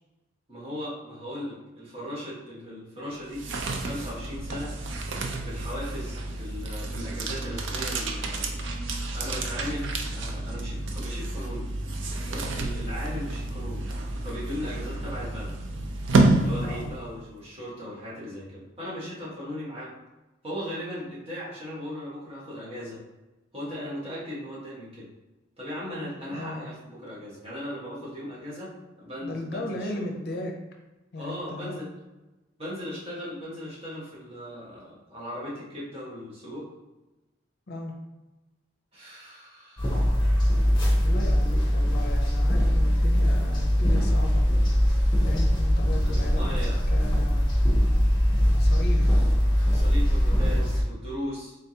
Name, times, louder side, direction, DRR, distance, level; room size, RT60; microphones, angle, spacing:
voice 1, 0.5-3.4 3.8-4.7 5.4-8.6 9.1-11.7 12.2-13.8 14.2-15.5 16.4-19.9 20.4-23.0 23.5-25.1 25.6-28.7 29.0-29.9 31.1-31.9 32.6-36.6 38.9-40.1 45.9-46.8 49.0-49.2 49.6-51.5, equal, 30° right, -8 dB, 1.5 m, -37 dB
sound 1, 3.1-17.2, right 2 dB, 75° right, 0.5 m, -29 dB
voice 2, 16.6-16.9 26.3-26.7 29.2-30.5 31.1-31.8 37.7-37.9 41.0-44.4 45.2-47.5 48.5-49.4, left 2 dB, 55° left, 1 dB, 0.6 m, -36 dB
sound 2, 39.8-50.8, equal, 25° left, 0.9 m, -22 dB
3.7 x 3.3 x 2.8 m, 1.1 s
head